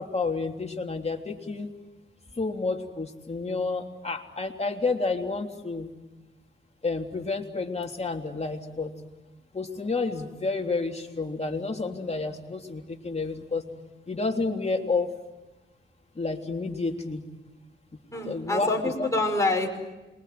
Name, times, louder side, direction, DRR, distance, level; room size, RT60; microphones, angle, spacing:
voice 1, 0.0-1.7 2.4-5.9 6.8-8.9 9.5-13.7 14.1-15.1 16.1-17.2 17.9-19.1, left 3 dB, 30° left, 2 dB, 3.4 m, -30 dB
voice 2, 18.1-19.9, left 2 dB, 15° left, 1 dB, 5.9 m, -27 dB
27.5 x 23.0 x 9.5 m, 1.1 s
cardioid pair, 85°, 21 cm